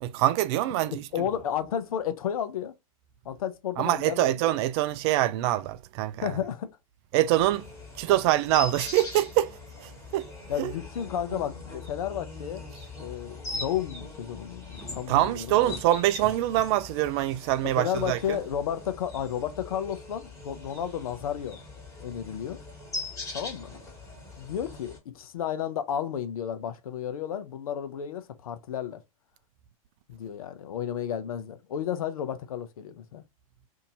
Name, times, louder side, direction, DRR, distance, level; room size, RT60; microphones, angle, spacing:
voice 1, 0.0-1.0 3.8-6.3 7.1-7.6 8.0-10.3 10.6-10.7 15.1-18.4, right 14 dB, 45° right, 0.4 m, -25 dB
voice 2, 1.1-2.8 3.2-4.4 6.2-6.7 10.5-12.7 13.0-15.5 17.8-21.6 22.0-22.6 23.3-23.7 24.4-29.0 30.1-33.2, left 9 dB, 75° left, 0.7 m, -32 dB
sound 1, 7.4-25.0, left 3 dB, 15° left, 1.6 m, -41 dB
2.7 x 2.7 x 3.9 m
hypercardioid pair, 115°, 18 cm